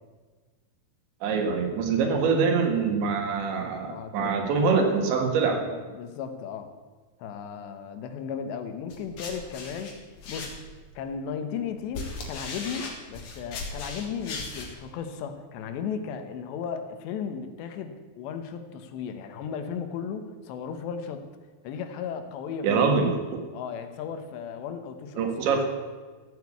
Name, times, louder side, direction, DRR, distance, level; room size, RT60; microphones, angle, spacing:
voice 1, 1.2-5.6 22.6-23.2 25.2-25.7, right 5 dB, 75° right, 4 dB, 4.1 m, -24 dB
voice 2, 3.8-4.4 5.5-6.7 7.2-10.0 10.3-10.5 11.0-21.2 21.6-22.8 23.5-25.2, left 7 dB, 75° left, 8 dB, 3.2 m, -35 dB
sound 1, 8.9-10.9 11.6-14.7, left 3 dB, 50° left, 3.1 m, -38 dB
14.5 x 9.4 x 8.3 m, 1.4 s
omnidirectional pair, 5.2 m